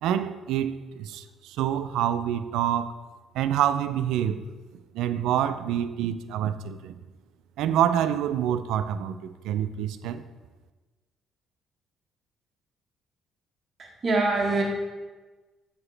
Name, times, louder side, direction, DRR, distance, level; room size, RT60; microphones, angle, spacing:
voice 1, 0.0-2.9 3.3-4.5 4.9-7.0 7.6-10.2, right 10 dB, 85° right, 12 dB, 0.3 m, -27 dB
voice 2, 13.8-14.6, right 3 dB, 35° right, 0 dB, 1.2 m, -24 dB
8.3 x 4.8 x 3.2 m, 1.3 s
cardioid pair, 120°, 0 cm